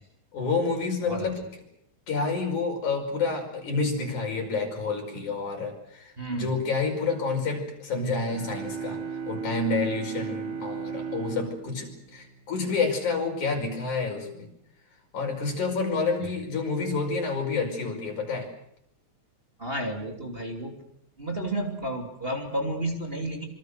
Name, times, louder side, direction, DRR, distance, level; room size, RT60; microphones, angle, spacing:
voice 1, 0.3-1.4 2.1-9.0 9.3-14.5 15.1-18.5, left 4 dB, 80° left, 2 dB, 6.8 m, -29 dB
voice 2, 6.2-6.5 16.2-16.4 19.6-20.8 21.2-23.5, right 1 dB, 20° right, 1 dB, 3.0 m, -31 dB
sound 1, 8.3-13.0, right 6 dB, 45° right, 4.3 m, -36 dB
26.5 x 25.0 x 6.7 m, 0.75 s
omnidirectional pair, 3.4 m